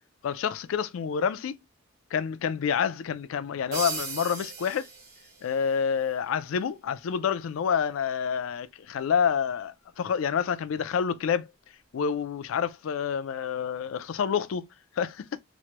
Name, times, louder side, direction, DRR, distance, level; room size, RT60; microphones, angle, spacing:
voice 1, 0.2-1.6 2.1-4.9 5.4-11.5 11.9-14.7 15.0-15.2, left 7 dB, 85° left, 0.4 m, -28 dB
sound 1, 3.7-5.8, right 4 dB, 50° right, 0.9 m, -37 dB
3.0 x 2.1 x 2.9 m
head